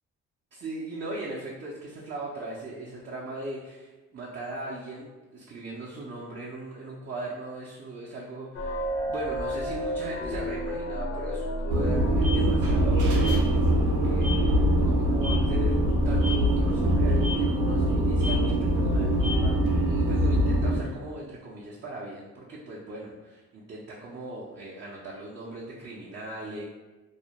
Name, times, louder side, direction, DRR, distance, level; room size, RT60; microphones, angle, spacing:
voice 1, 0.5-15.8 16.0-26.6, right 2 dB, 35° right, -4 dB, 0.5 m, -39 dB
sound 1, 8.5-20.1, equal, 50° left, 0.5 m, -33 dB
sound 2, 11.7-20.8, right 1 dB, 85° right, 0.6 m, -23 dB
2.3 x 2.1 x 2.8 m, 1.2 s
cardioid pair, 90°, 30 cm